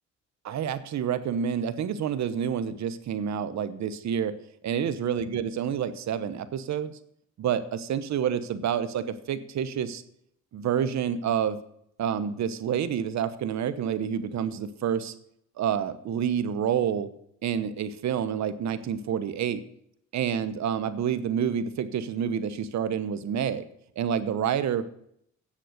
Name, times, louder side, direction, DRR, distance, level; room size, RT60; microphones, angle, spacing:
voice 1, 0.4-4.3 4.6-6.9 7.4-10.0 10.5-11.6 12.0-15.1 15.6-17.1 17.4-19.6 20.1-23.6 24.0-24.9, right 8 dB, 65° right, 13 dB, 1.0 m, -28 dB
10.5 x 7.6 x 6.5 m, 0.71 s
cardioid pair, 90°, 30 cm